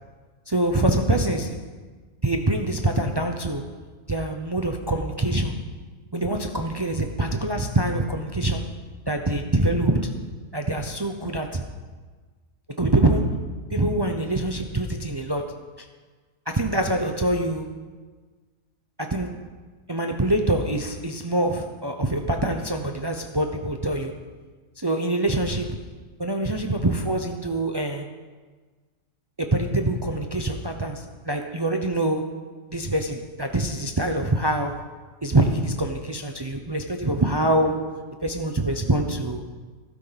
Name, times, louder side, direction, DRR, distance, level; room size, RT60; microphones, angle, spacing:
voice 1, 0.5-1.6 2.2-3.6 4.1-5.6 6.1-8.7 9.1-10.2 10.5-11.6 12.7-13.4 13.7-15.9 16.5-17.8 19.0-19.4 19.9-24.2 24.8-25.9 26.2-28.1 29.4-34.9 35.2-39.4, right 1 dB, 25° right, 5 dB, 0.6 m, -25 dB
16.0 x 15.0 x 4.1 m, 1.4 s
omnidirectional pair, 1.4 m